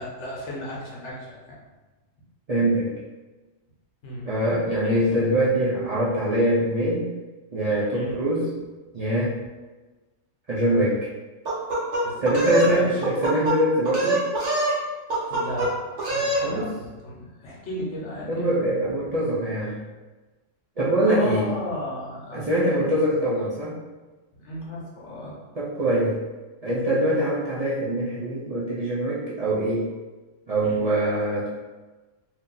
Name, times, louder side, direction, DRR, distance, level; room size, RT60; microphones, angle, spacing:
voice 1, 0.0-1.6 4.0-4.3 4.8-5.0 7.9-8.2 12.0-12.9 15.3-18.6 21.0-22.8 24.3-25.3 30.6-30.8, left 1 dB, 65° left, -4 dB, 1.2 m, -35 dB
voice 2, 2.5-2.9 4.2-7.0 7.5-8.5 8.9-9.4 10.5-11.1 12.2-14.2 16.4-16.7 18.3-19.8 20.8-21.5 22.3-23.7 25.6-26.2 26.6-29.9 30.5-31.5, right 1 dB, 45° right, -9 dB, 0.5 m, -23 dB
sound 1, 11.5-12.7 13.0-13.6 13.9-14.8 15.1-15.7 16.0-16.4, right 2 dB, 70° right, 1.2 m, -24 dB
2.7 x 2.7 x 3.8 m, 1.2 s
omnidirectional pair, 1.3 m